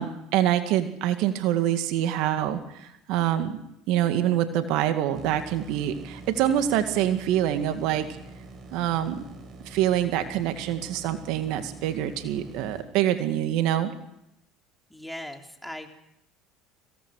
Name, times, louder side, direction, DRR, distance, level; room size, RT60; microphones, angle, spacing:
voice 1, 0.0-3.6 3.9-8.1 8.7-9.2 9.7-13.9, right 11 dB, 70° right, 8 dB, 1.9 m, -25 dB
sound 1, 5.1-12.8, right 2 dB, 45° right, 5.5 m, -45 dB
voice 2, 14.9-15.9, left 1 dB, 5° left, 3 dB, 3.3 m, -39 dB
25.0 x 17.5 x 6.4 m, 0.79 s
hypercardioid pair, 80°, 0 cm